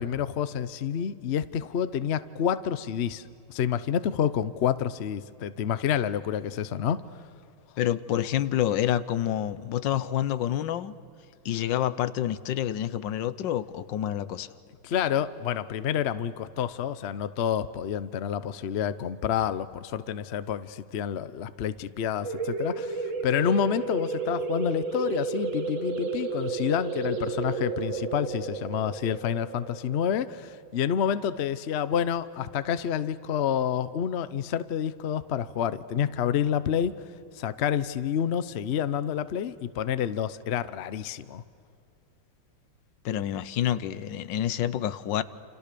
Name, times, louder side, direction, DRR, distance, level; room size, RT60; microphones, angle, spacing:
voice 1, 0.0-3.2 3.5-7.0 14.8-36.9 37.3-41.4, left 8 dB, 90° left, 14 dB, 0.5 m, -28 dB
voice 2, 7.8-10.9 11.4-14.5 43.0-45.2, left 11 dB, 70° left, 15 dB, 1.4 m, -28 dB
sound 1, 22.2-31.6, right 4 dB, 40° right, 1.5 m, -32 dB
28.5 x 28.5 x 6.8 m, 2.5 s
omnidirectional pair, 2.2 m